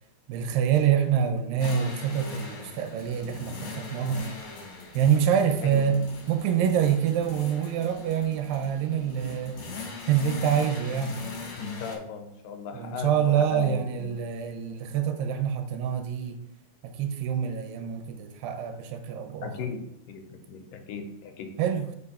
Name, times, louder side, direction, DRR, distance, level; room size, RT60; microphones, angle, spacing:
voice 1, 0.3-4.3 4.9-11.3 12.7-16.4 16.8-19.5 21.6-22.0, right 8 dB, 85° right, 2.3 m, -26 dB
sound 1, 1.6-12.0, left 4 dB, 60° left, 1.8 m, -41 dB
voice 2, 5.6-6.0 9.2-9.3 11.6-14.1 19.4-21.5, left 5 dB, 80° left, 2.3 m, -37 dB
4.9 x 4.5 x 4.2 m
omnidirectional pair, 4.0 m